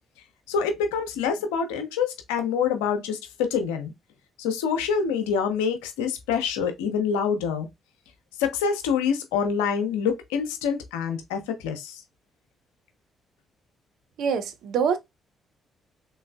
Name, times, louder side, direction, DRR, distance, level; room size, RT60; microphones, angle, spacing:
voice 1, 0.5-3.9 4.4-7.7 8.4-12.0, left 6 dB, 85° left, 0.6 m, -26 dB
voice 2, 14.2-15.0, right 6 dB, 70° right, 0.5 m, -25 dB
3.3 x 3.1 x 2.2 m
hypercardioid pair, 45°, 0 cm